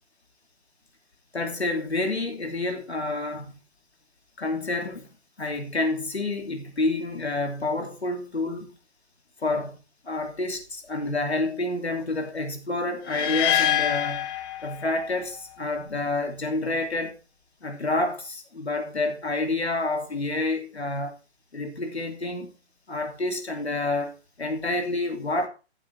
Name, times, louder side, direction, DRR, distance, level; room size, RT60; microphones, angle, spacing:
voice 1, 1.3-3.5 4.4-5.1 5.4-8.7 9.4-9.8 10.0-14.3 14.6-17.2 17.6-21.2 21.5-22.5 22.9-25.5, left 2 dB, 75° left, 2.9 m, -28 dB
sound 1, 13.1-15.2, left 11 dB, 20° left, 1.0 m, -26 dB
14.0 x 7.7 x 3.4 m
figure-of-eight pair, 130°, 33 cm